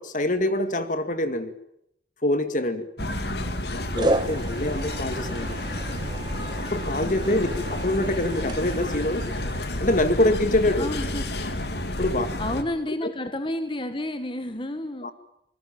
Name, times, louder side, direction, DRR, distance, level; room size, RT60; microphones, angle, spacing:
voice 1, 0.0-1.5 2.2-2.9 3.7-5.6 6.6-9.3 9.8-10.9 12.0-12.3 12.9-13.1 15.0-15.1, left 1 dB, 45° left, 10 dB, 2.1 m, -25 dB
sound 1, 3.0-12.6, left 1 dB, 60° left, 2.5 m, -30 dB
voice 2, 3.0-3.7 7.0-7.4 10.8-11.3 12.4-15.1, left 1 dB, 30° left, 9 dB, 1.8 m, -31 dB
sound 2, 3.0-3.6 4.0-9.9, right 1 dB, 25° right, 1.4 m, -33 dB
26.5 x 20.5 x 9.0 m, 0.76 s
head